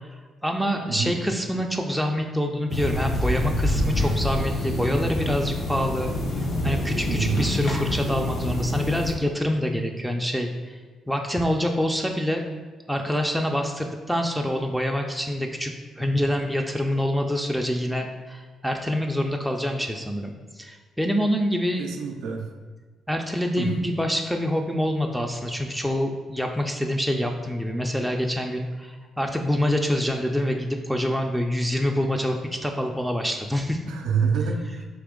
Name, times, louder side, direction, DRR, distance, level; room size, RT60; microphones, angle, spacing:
voice 1, 0.0-6.1 6.6-10.8 11.1-12.4 12.9-21.9 23.1-33.8, equal, ahead, 2 dB, 0.3 m, -26 dB
voice 2, 0.9-1.2 7.1-7.5 21.8-22.5 23.6-23.7 33.9-34.8, right 6 dB, 85° right, 4 dB, 0.3 m, -26 dB
sound 1, 2.7-9.1, left 1 dB, 50° left, 0.9 m, -26 dB
3.4 x 2.9 x 3.7 m, 1.4 s
cardioid pair, 90°, 0 cm